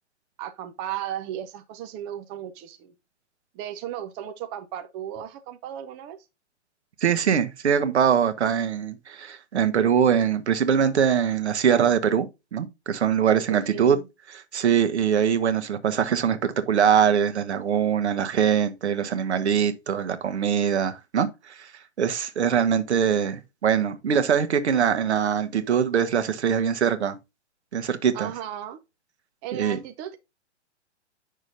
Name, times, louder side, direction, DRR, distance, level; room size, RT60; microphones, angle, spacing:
voice 1, 0.4-2.9 3.5-6.2 13.2-14.1 28.1-28.8 29.4-30.2, right 11 dB, 15° right, 0.4 m, -35 dB
voice 2, 7.0-12.3 12.5-14.0 14.3-21.7 22.0-27.2 27.7-28.3 29.5-29.8, right 8 dB, 65° right, 1.3 m, -23 dB
8.5 x 6.2 x 2.6 m
figure-of-eight pair, 120°, 36 cm